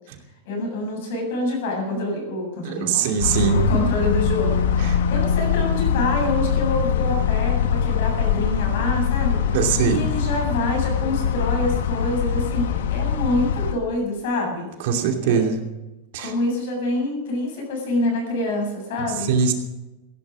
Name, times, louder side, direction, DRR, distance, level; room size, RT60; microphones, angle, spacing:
voice 1, 0.4-3.1 3.4-9.4 9.8-14.7 15.2-15.5 16.2-19.3, left 2 dB, 65° left, 1 dB, 7.7 m, -26 dB
voice 2, 2.6-3.6 4.8-5.0 9.5-10.0 14.8-15.6 16.1-16.3 19.2-19.5, right 6 dB, 60° right, 3 dB, 2.7 m, -21 dB
sound 1, 3.2-13.7, left 8 dB, 90° left, 1.4 m, -22 dB
16.0 x 11.5 x 6.3 m, 1.0 s
supercardioid pair, 160°, 0 cm